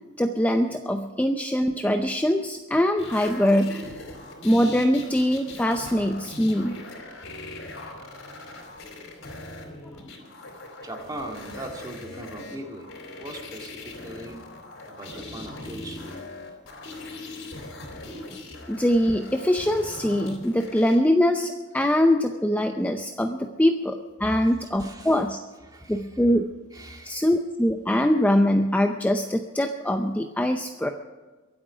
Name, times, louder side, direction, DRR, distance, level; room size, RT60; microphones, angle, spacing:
voice 1, 0.2-4.0 4.4-6.8 18.7-25.4 25.9-26.4 27.0-30.9, left 1 dB, 10° left, 5 dB, 0.5 m, -23 dB
sound 1, 3.0-21.0 22.3-22.4, left 2 dB, 70° left, 3.6 m, -41 dB
voice 2, 10.8-12.9 13.2-14.4 14.9-16.3 24.8-25.2 25.7-26.1 26.7-27.2, right 1 dB, 20° right, 2 dB, 2.0 m, -39 dB
23.0 x 8.7 x 5.0 m, 1.3 s
head